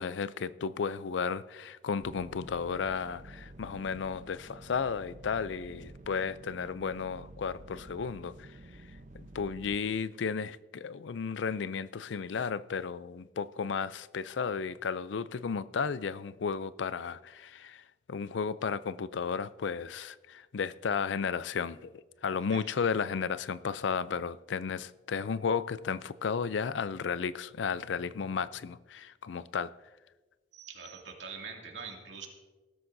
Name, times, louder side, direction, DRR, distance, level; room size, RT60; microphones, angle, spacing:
voice 1, 0.0-8.5 9.1-29.7, left 6 dB, 85° left, 0.4 m, -34 dB
sound 1, 2.0-9.8, right 1 dB, 45° right, 0.7 m, -50 dB
voice 2, 30.5-32.3, right 5 dB, 75° right, 2.4 m, -43 dB
20.0 x 12.5 x 2.7 m
head